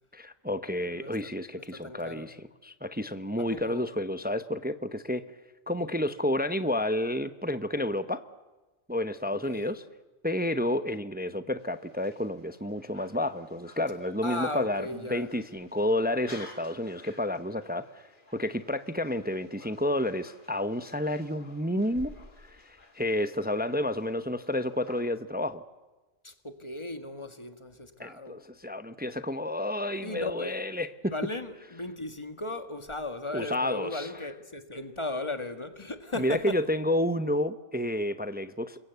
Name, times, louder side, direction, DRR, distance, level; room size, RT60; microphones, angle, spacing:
voice 1, 0.1-5.2 5.7-8.2 8.9-9.8 10.2-17.8 18.3-22.1 22.5-25.6 28.0-31.1 33.3-34.1 36.2-38.8, left 1 dB, 10° right, 0.8 m, -30 dB
voice 2, 0.9-1.3 1.7-2.3 3.4-3.9 9.4-9.8 14.2-15.3 26.2-28.4 30.0-30.6 31.1-36.6, left 2 dB, 25° left, 1.7 m, -36 dB
sound 1, 11.6-25.0, left 2 dB, 45° left, 2.8 m, -54 dB
28.5 x 23.0 x 8.1 m
omnidirectional pair, 1.2 m